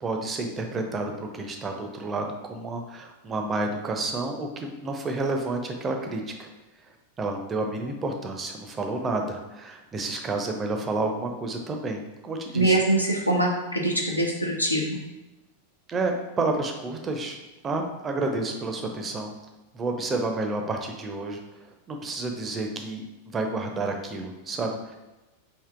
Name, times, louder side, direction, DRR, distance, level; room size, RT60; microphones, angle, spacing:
voice 1, 0.0-6.5 7.2-12.8 15.9-17.4 17.6-19.3 19.7-21.4 21.9-24.9, right 2 dB, 20° right, 3 dB, 0.4 m, -30 dB
voice 2, 12.5-15.0, right 1 dB, 85° left, 0 dB, 0.5 m, -23 dB
3.4 x 2.6 x 2.4 m, 1.1 s
figure-of-eight pair, 90°, 0 cm